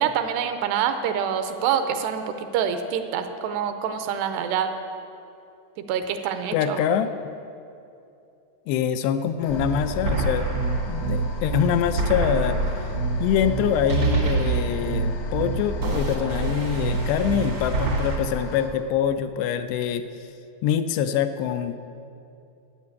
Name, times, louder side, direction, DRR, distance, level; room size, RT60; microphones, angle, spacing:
voice 1, 0.0-4.7 5.9-6.8, right 8 dB, 80° right, 8 dB, 2.7 m, -26 dB
voice 2, 6.5-7.1 8.7-10.5 10.9-12.9 13.2-20.1 20.6-21.8, left 9 dB, 80° left, 9 dB, 2.6 m, -25 dB
sound 1, 9.4-18.7, left 3 dB, 65° left, 1.6 m, -40 dB
sound 2, 9.5-18.2, right 3 dB, 65° right, 1.2 m, -26 dB
12.0 x 9.1 x 8.4 m, 2.7 s
omnidirectional pair, 4.9 m